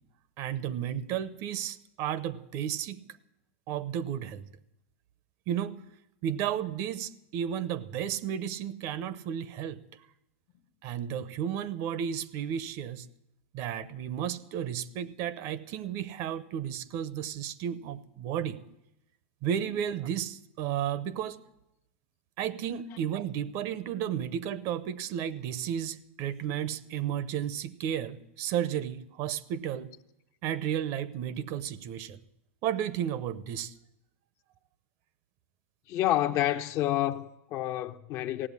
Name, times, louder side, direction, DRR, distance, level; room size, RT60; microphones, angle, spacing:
voice 1, 0.4-3.0 3.7-4.5 5.5-5.7 6.2-9.8 10.8-13.1 13.5-18.6 19.4-21.4 22.4-29.9 30.4-32.2 32.6-33.7, right 9 dB, 45° right, 0.7 m, -33 dB
voice 2, 35.9-38.5, left 13 dB, 40° left, 0.7 m, -29 dB
16.0 x 7.9 x 9.7 m
supercardioid pair, 145°, 7 cm